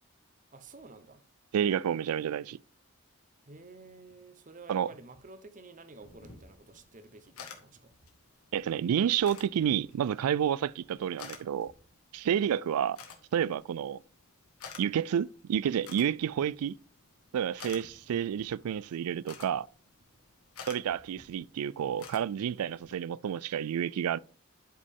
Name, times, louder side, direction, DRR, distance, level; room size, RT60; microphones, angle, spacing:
voice 1, 0.5-1.2 3.5-7.9, right 3 dB, 35° right, 0.8 m, -51 dB
voice 2, 1.5-2.6 4.7-4.9 8.5-11.7 12.1-13.0 13.3-14.0 14.8-16.8 17.3-19.7 20.7-24.2, right 9 dB, 90° right, 0.3 m, -30 dB
sound 1, 6.0-22.9, left 5 dB, 85° left, 1.6 m, -52 dB
11.0 x 5.2 x 3.6 m
head